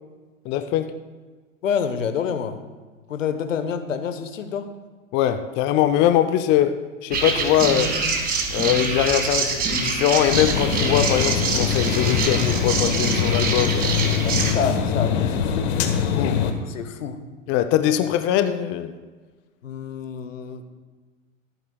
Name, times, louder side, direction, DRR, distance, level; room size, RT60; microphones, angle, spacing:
voice 1, 0.4-0.9 5.1-8.0 8.5-14.2 16.1-16.4 17.5-18.9, left 11 dB, 30° left, 9 dB, 0.5 m, -22 dB
voice 2, 1.6-2.6 3.1-4.7 14.2-15.7 16.4-17.2 19.6-20.6, left 7 dB, 70° left, 9 dB, 1.1 m, -28 dB
sound 1, 7.1-14.5, right 4 dB, 20° right, 1.7 m, -25 dB
sound 2, 10.3-16.5, left 7 dB, 50° left, 1.3 m, -23 dB
26.0 x 8.9 x 2.3 m, 1.4 s
figure-of-eight pair, 100°, 40 cm